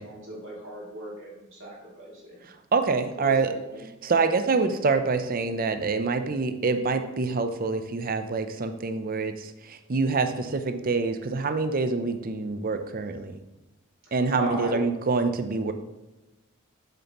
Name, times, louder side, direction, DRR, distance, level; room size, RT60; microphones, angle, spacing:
voice 1, 0.0-2.5 3.1-3.8 14.3-14.8, right 2 dB, 60° right, -5 dB, 2.6 m, -37 dB
voice 2, 2.4-3.5 4.0-13.4 14.1-15.7, right 4 dB, 40° right, 8 dB, 0.6 m, -26 dB
7.9 x 6.8 x 3.0 m, 1.0 s
head